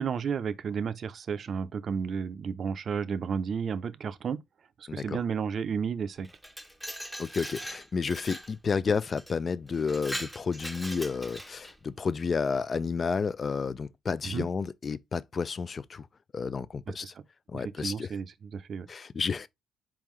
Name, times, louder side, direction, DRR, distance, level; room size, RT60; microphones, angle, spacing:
voice 1, 0.0-4.4 4.8-6.3 14.2-14.5 16.9-17.1 17.5-18.9, right 6 dB, 55° right, 0.5 m, -32 dB
voice 2, 4.9-5.2 7.2-16.1 16.3-17.1 17.5-18.1 18.9-19.5, left 5 dB, 40° left, 0.4 m, -31 dB
Glass, 6.2-8.5 9.2-9.3 9.7-11.8, equal, ahead, 0.7 m, -40 dB
4.5 x 3.7 x 3.1 m
cardioid pair, 90°, 0 cm